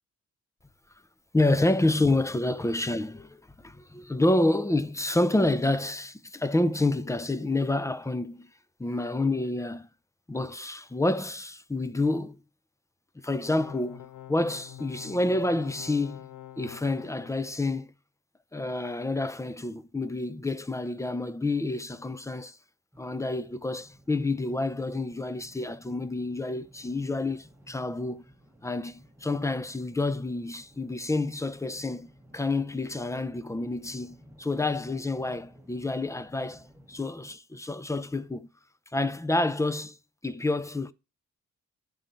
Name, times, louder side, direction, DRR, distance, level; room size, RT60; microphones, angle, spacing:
voice 1, 1.3-8.5 8.8-9.9 10.3-12.4 13.2-16.3 16.6-17.9 18.5-22.6 23.0-28.2 28.6-38.5 38.9-40.0 40.2-40.9, left 2 dB, 10° left, 0.5 m, -28 dB
sound 1, 13.4-17.3, left 13 dB, 80° left, 0.7 m, -46 dB
sound 2, 22.9-37.4, equal, 5° right, 1.3 m, -55 dB
10.0 x 3.9 x 4.3 m
cardioid pair, 95°, 30 cm